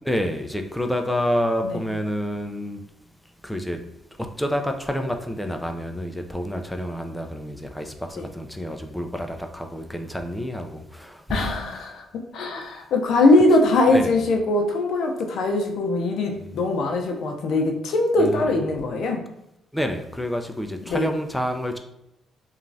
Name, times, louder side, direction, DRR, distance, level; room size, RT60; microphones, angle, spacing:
voice 1, 0.0-2.8 3.4-3.8 4.4-11.6 13.9-14.2 18.2-18.6 19.7-21.8, equal, 5° left, 0.4 m, -28 dB
voice 2, 11.3-12.0 12.3-19.2 20.9-21.1, left 2 dB, 75° left, 0.5 m, -21 dB
3.0 x 2.3 x 2.6 m
cardioid pair, 90°, 0 cm